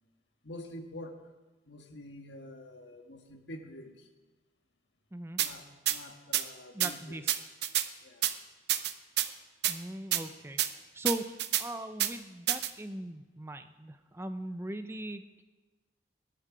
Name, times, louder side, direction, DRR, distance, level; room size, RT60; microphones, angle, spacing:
voice 1, 0.4-1.2 1.7-4.1 5.4-7.2 8.0-8.3, left 1 dB, 90° left, 4 dB, 1.6 m, -47 dB
voice 2, 5.1-5.4 6.7-7.3 9.7-10.6 10.9-15.4, right 1 dB, 15° right, 9 dB, 0.5 m, -39 dB
sound 1, 5.4-5.5 5.9-6.0 6.3-6.4 6.8-6.9 7.3-7.9 8.2-8.3 8.7-9.3 9.6-9.7 10.1-10.2 10.6-10.7 11.0-11.6 12.0-12.1 12.5-12.7, right 12 dB, 70° right, 0.7 m, -28 dB
18.0 x 11.0 x 5.0 m, 1.2 s
head